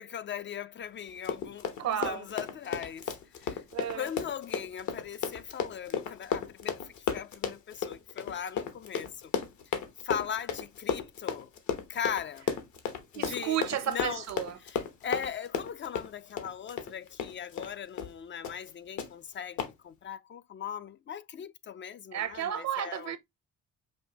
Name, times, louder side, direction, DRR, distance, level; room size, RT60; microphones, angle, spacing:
voice 1, 0.0-3.6 3.9-9.3 10.0-11.5 11.9-12.5 13.1-14.2 14.6-23.1, left 8 dB, 40° left, 0.4 m, -39 dB
Run, 1.1-17.7 18.0-18.1 18.4-18.7 19.0-19.1 19.6-19.7, left 7 dB, 70° left, 1.0 m, -34 dB
voice 2, 1.8-2.3 3.7-4.1 13.1-14.5 22.1-23.2, right 10 dB, 60° right, 0.7 m, -32 dB
5.3 x 2.6 x 2.9 m
cardioid pair, 90°, 30 cm